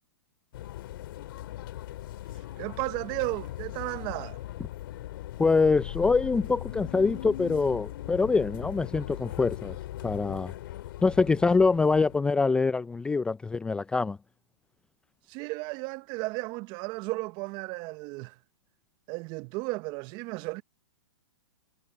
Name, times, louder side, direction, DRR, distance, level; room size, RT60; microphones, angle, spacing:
sound 1, 0.5-12.2, left 14 dB, 55° left, 2.0 m, -39 dB
voice 1, 2.6-4.4 15.3-18.3 19.1-20.6, right 24 dB, 35° right, 0.9 m, -34 dB
voice 2, 5.4-9.8 10.0-10.5 11.0-14.2, left 4 dB, 5° left, 0.4 m, -24 dB
hypercardioid pair, 130°, 14 cm